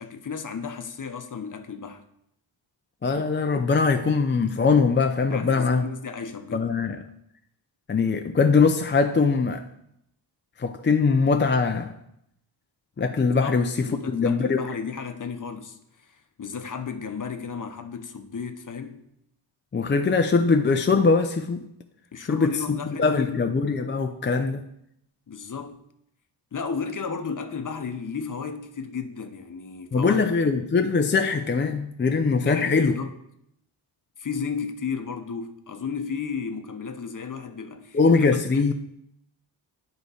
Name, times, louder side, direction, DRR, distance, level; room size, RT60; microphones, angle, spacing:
voice 1, 0.0-2.0 5.3-6.7 13.4-13.6 13.9-19.0 22.1-23.4 25.3-25.8 26.5-30.2 32.5-33.1 34.2-38.7, left 5 dB, 40° left, 0.9 m, -34 dB
voice 2, 3.0-5.9 6.5-7.0 7.9-9.6 10.6-11.9 13.0-14.7 19.7-21.7 22.3-24.6 29.9-33.0 37.9-38.7, left 4 dB, 25° left, 0.5 m, -22 dB
9.2 x 3.3 x 4.9 m
cardioid pair, 50°, 47 cm